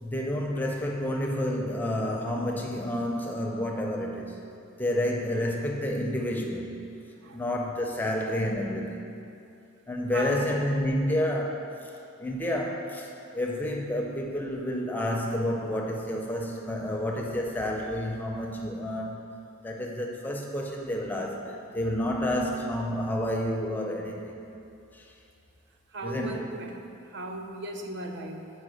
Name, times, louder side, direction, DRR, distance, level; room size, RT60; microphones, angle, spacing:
voice 1, 0.0-4.4 4.8-6.8 7.3-9.1 9.9-11.9 12.2-19.2 19.6-24.4 24.9-25.1 26.0-26.4, left 1 dB, 10° left, 0 dB, 0.5 m, -30 dB
voice 2, 10.1-10.6 25.9-26.7 27.0-28.5, right 2 dB, 55° right, 4 dB, 0.5 m, -36 dB
5.1 x 4.9 x 6.3 m, 2.6 s
head